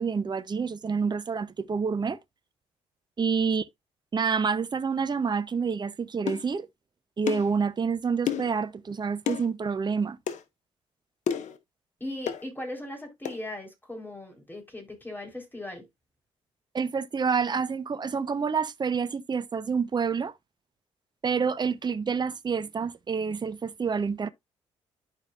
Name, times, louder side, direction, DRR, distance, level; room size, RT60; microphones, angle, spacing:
voice 1, 0.0-2.2 3.2-3.7 4.1-6.7 7.2-10.2 16.7-20.3 21.2-24.3, right 5 dB, 30° right, 0.7 m, -28 dB
sound 1, 6.3-6.5 7.3-7.5 8.3-8.6 9.3-9.5 10.3-10.4 11.3-11.6 12.3-12.4 13.3-13.4, left 9 dB, 55° left, 1.0 m, -30 dB
voice 2, 12.0-15.8, left 1 dB, 15° left, 4.2 m, -38 dB
11.5 x 5.0 x 2.5 m
figure-of-eight pair, 45°, 15 cm